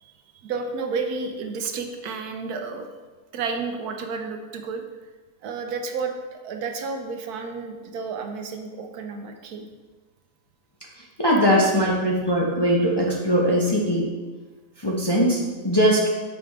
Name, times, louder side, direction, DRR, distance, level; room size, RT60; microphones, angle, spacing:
voice 1, 0.0-2.9 3.3-4.8 5.4-9.7, right 4 dB, 85° right, 5 dB, 1.2 m, -31 dB
voice 2, 11.2-14.1 14.8-16.1, equal, 25° left, -4 dB, 0.6 m, -20 dB
6.8 x 4.8 x 3.5 m, 1.4 s
omnidirectional pair, 1.6 m